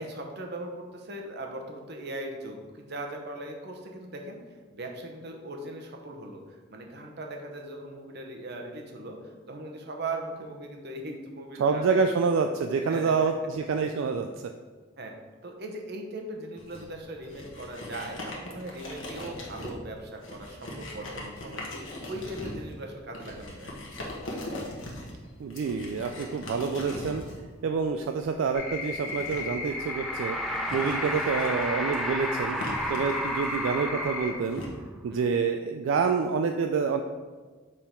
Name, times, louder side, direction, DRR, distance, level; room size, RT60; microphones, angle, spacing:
voice 1, 0.0-12.1 12.8-13.1 15.0-15.1 15.4-23.7 30.5-30.8 35.1-35.4, right 1 dB, 55° right, 2 dB, 0.9 m, -39 dB
voice 2, 11.6-14.5 25.4-27.2 27.6-30.4 30.7-32.6 32.9-34.6 35.0-37.0, right 5 dB, 80° right, 5 dB, 0.3 m, -27 dB
sound 1, 16.6-34.7, left 1 dB, 80° left, 1.2 m, -41 dB
sound 2, 28.5-32.4 32.7-34.3, left 3 dB, 45° left, 1.5 m, -35 dB
sound 3, 29.7-34.7, equal, ahead, 0.4 m, -33 dB
6.7 x 3.7 x 4.4 m, 1.4 s
head